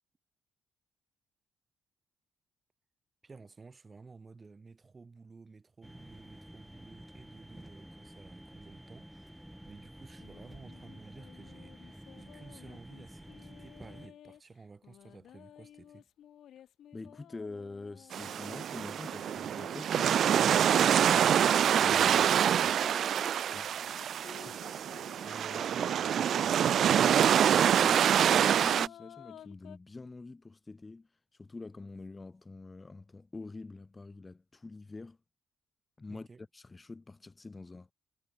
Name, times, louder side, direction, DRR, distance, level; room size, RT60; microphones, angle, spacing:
voice 1, 3.2-16.1 21.9-22.6 25.2-27.1 36.1-36.4, right 4 dB, 30° right, 6.9 m, -53 dB
sound 1, 5.8-14.1, equal, 5° right, 6.1 m, -51 dB
sound 2, 10.2-14.4 14.8-18.6 19.1-23.3 23.9-27.5 28.0-29.8, left 10 dB, 70° left, 7.3 m, -53 dB
voice 2, 16.9-21.3 21.8-22.1 22.5-22.8 23.5-23.7 24.4-24.8 27.8-31.1 31.4-35.2 36.0-36.3 36.5-37.9, left 3 dB, 25° left, 5.1 m, -45 dB
sound 3, 18.1-28.9, right 9 dB, 65° right, 0.5 m, -26 dB
cardioid pair, 90°, 0 cm